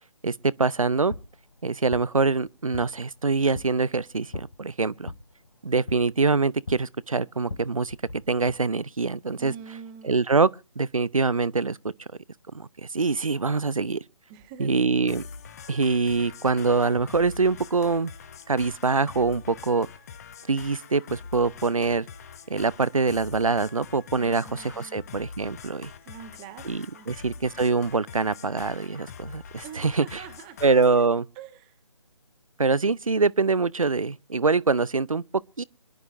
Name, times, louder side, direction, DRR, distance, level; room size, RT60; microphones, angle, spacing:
voice 1, 0.2-1.1 1.6-5.1 5.6-8.0 8.3-9.5 10.0-10.5 10.8-11.8 12.5-12.7 12.9-14.0 14.6-15.2 15.7-18.1 18.5-19.9 20.5-22.1 22.5-25.9 26.7-30.1 30.6-31.3 32.6-35.2 35.6-35.7, right 4 dB, 75° right, 0.6 m, -24 dB
sound 1, 0.8-8.5, left 3 dB, 65° left, 1.4 m, -42 dB
voice 2, 9.4-10.2 14.3-14.7 24.1-25.1 26.0-26.7 26.9-27.1 29.6-30.6 31.3-31.8, right 9 dB, 15° right, 1.3 m, -44 dB
sound 2, 15.1-31.1, left 6 dB, 30° left, 1.1 m, -44 dB
26.0 x 11.0 x 2.5 m
figure-of-eight pair, 145°, 18 cm